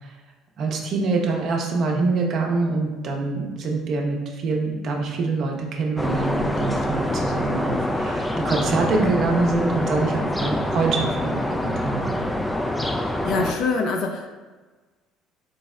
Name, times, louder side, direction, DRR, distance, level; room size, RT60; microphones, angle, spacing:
voice 1, 0.6-12.2, right 3 dB, 55° right, 1 dB, 0.6 m, -25 dB
sound 1, 6.0-13.5, left 1 dB, 10° left, 0.3 m, -25 dB
voice 2, 13.2-14.4, left 4 dB, 60° left, 2 dB, 0.6 m, -24 dB
3.9 x 2.0 x 3.6 m, 1.3 s
hypercardioid pair, 65°, 0 cm